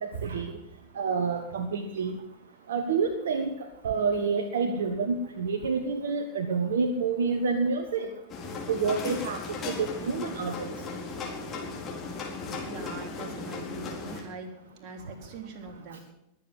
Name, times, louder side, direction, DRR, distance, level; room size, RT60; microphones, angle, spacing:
voice 1, 0.0-0.5 0.9-2.1 2.7-8.1 8.7-9.4 9.7-10.7 15.9-16.0, right 5 dB, 60° right, 9 dB, 1.4 m, -28 dB
sound 1, 8.3-14.2, left 4 dB, 25° left, 4.5 m, -36 dB
voice 2, 12.7-14.5 14.8-16.0, right 4 dB, 40° right, 3 dB, 3.5 m, -42 dB
22.0 x 8.3 x 7.5 m, 0.86 s
figure-of-eight pair, 90°, 0 cm